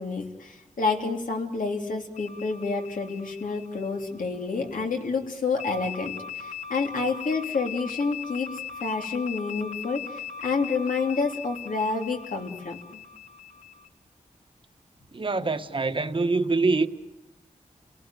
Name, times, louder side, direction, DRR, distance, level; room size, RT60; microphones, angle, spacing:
voice 1, 0.0-8.5 8.8-13.0, left 4 dB, 80° left, 3.2 m, -29 dB
sound 1, 2.1-4.7 5.6-13.9, left 7 dB, 55° left, 2.3 m, -39 dB
voice 2, 15.1-16.9, right 3 dB, 40° right, 1.3 m, -24 dB
29.5 x 18.5 x 9.1 m
wide cardioid pair, 120°, 14 cm